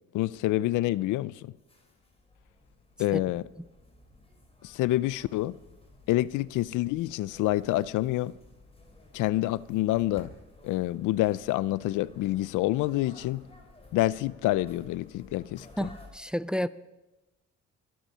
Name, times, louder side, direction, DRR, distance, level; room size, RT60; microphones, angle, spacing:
voice 1, 0.1-1.5 3.0-3.4 4.6-5.6 6.1-8.3 9.1-10.3 10.6-13.4 13.9-15.7, left 16 dB, 90° left, 0.5 m, -27 dB
sound 1, 1.2-16.1, left 2 dB, 20° left, 4.1 m, -55 dB
voice 2, 15.8-16.7, equal, 5° right, 0.4 m, -30 dB
23.5 x 10.0 x 5.6 m
cardioid pair, 90°, 30 cm